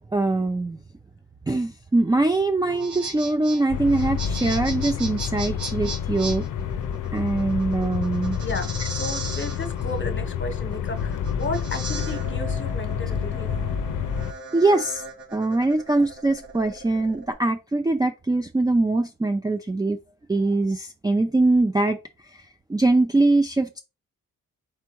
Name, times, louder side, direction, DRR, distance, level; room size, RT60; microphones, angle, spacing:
voice 1, 0.1-0.8 1.5-6.5 7.1-8.4 8.8-8.9 14.5-15.0 15.3-20.0 20.3-23.8, right 2 dB, 10° right, 0.4 m, -22 dB
sound 1, 2.6-17.3, right 3 dB, 85° right, 2.2 m, -38 dB
sound 2, 3.7-14.3, left 8 dB, 60° left, 0.6 m, -29 dB
voice 2, 8.4-13.5, left 2 dB, 35° left, 1.1 m, -33 dB
4.5 x 3.3 x 3.0 m
cardioid pair, 55°, 35 cm